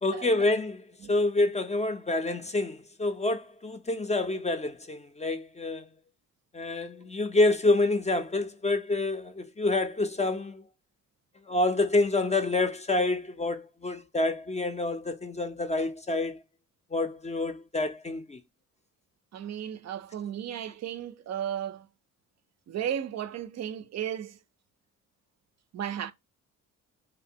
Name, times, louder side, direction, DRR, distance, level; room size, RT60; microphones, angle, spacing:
voice 1, 0.0-5.8 6.5-10.6 11.5-16.4 16.9-18.4, left 2 dB, 20° left, 0.4 m, -27 dB
voice 2, 19.3-21.9 22.7-24.4 25.7-26.1, right 9 dB, 50° right, 0.4 m, -34 dB
2.8 x 2.1 x 2.6 m
supercardioid pair, 65°, 35 cm